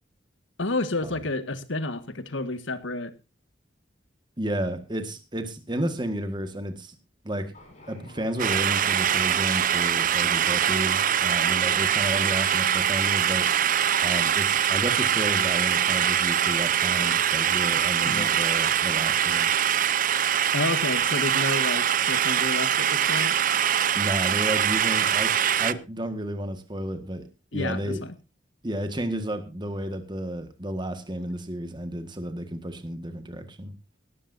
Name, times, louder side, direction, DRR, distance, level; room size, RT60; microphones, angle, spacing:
voice 1, 0.6-3.1 18.0-18.3 20.5-23.3 27.5-28.1, left 2 dB, 80° left, 11 dB, 1.6 m, -30 dB
voice 2, 4.4-6.9 7.2-7.5 7.9-13.5 14.0-19.5 23.9-28.0 28.6-33.7, right 1 dB, 25° right, 8 dB, 1.7 m, -32 dB
sound 1, 7.5-21.3, left 1 dB, 40° left, 5.4 m, -51 dB
sound 2, 8.4-25.7, right 9 dB, 45° right, 0.6 m, -23 dB
18.5 x 14.0 x 2.7 m, 0.28 s
head